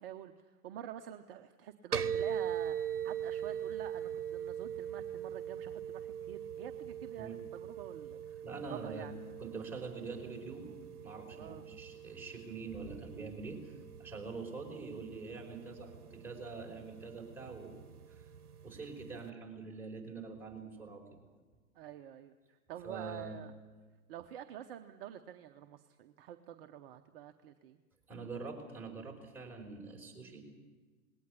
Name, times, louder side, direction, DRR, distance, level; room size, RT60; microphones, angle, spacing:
voice 1, 0.0-8.4 8.7-9.1 11.4-11.7 21.7-22.3 22.7-23.5 24.1-27.8, right 11 dB, 40° right, 7 dB, 0.9 m, -48 dB
sound 1, 1.9-19.3, right 8 dB, 80° right, 0.9 m, -42 dB
voice 2, 8.4-9.1 9.4-10.7 11.0-17.8 18.1-18.2 18.6-21.0 22.8-23.4 28.1-30.4, right 4 dB, 5° right, -3 dB, 5.0 m, -45 dB
20.0 x 18.0 x 8.4 m, 1.4 s
figure-of-eight pair, 110°, 44 cm